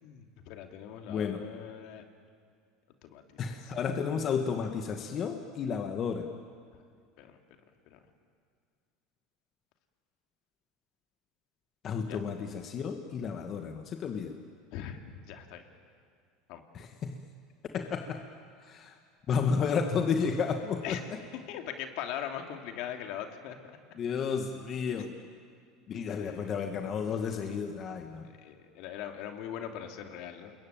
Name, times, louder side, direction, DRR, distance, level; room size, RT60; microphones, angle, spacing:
voice 1, 0.0-2.0 3.1-3.2 7.2-7.3 7.9-8.0 12.1-12.2 14.7-15.0 15.3-15.6 16.5-16.6 20.8-21.0 21.5-23.6 25.0-25.1 26.1-26.5 28.2-30.5, left 9 dB, 65° left, 5 dB, 2.8 m, -40 dB
voice 2, 1.1-1.4 3.4-6.3 11.8-14.4 16.7-17.2 17.7-18.2 18.6-19.0 19.3-21.0 23.9-25.1 25.9-28.3, left 6 dB, 40° left, 5 dB, 1.8 m, -32 dB
28.0 x 22.0 x 9.1 m, 2.2 s
supercardioid pair, 110°, 0 cm